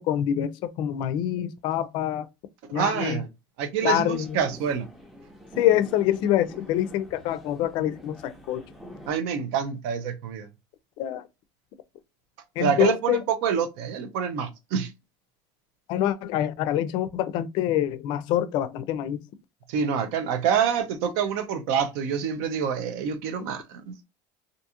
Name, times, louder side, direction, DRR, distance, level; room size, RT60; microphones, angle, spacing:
voice 1, 0.0-2.3 2.7-3.2 3.8-4.4 5.6-8.6 11.0-11.2 12.6-13.2 15.9-19.2, left 12 dB, 55° left, 0.4 m, -25 dB
voice 2, 2.7-3.3 3.6-4.9 9.1-10.5 12.6-14.9 19.7-23.9, right 7 dB, 70° right, 0.6 m, -26 dB
sound 1, 4.1-9.1, equal, 5° right, 0.6 m, -45 dB
2.5 x 2.4 x 2.8 m
cardioid pair, 155°, 10 cm